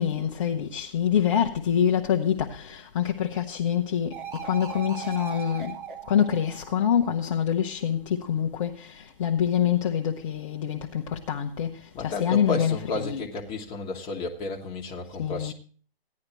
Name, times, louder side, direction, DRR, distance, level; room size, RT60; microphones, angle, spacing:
voice 1, 0.0-4.1 4.4-5.8 6.1-11.7 12.0-13.2 15.2-15.5, left 9 dB, 30° left, 0.8 m, -26 dB
sound 1, 4.1-7.4, right 8 dB, 55° right, 2.3 m, -39 dB
voice 2, 11.9-15.5, left 3 dB, 15° left, 1.5 m, -32 dB
16.0 x 10.5 x 3.0 m
hypercardioid pair, 145°, 31 cm